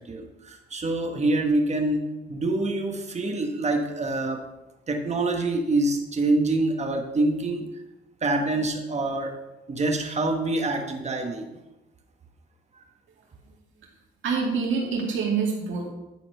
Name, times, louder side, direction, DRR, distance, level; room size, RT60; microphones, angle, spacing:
voice 1, 0.1-4.4 4.9-7.7 8.2-9.3 9.7-11.4, right 2 dB, 35° right, 3 dB, 1.5 m, -26 dB
voice 2, 14.2-15.9, right 5 dB, 75° right, -1 dB, 2.5 m, -26 dB
11.0 x 4.3 x 5.6 m, 1.0 s
cardioid pair, 90°, 20 cm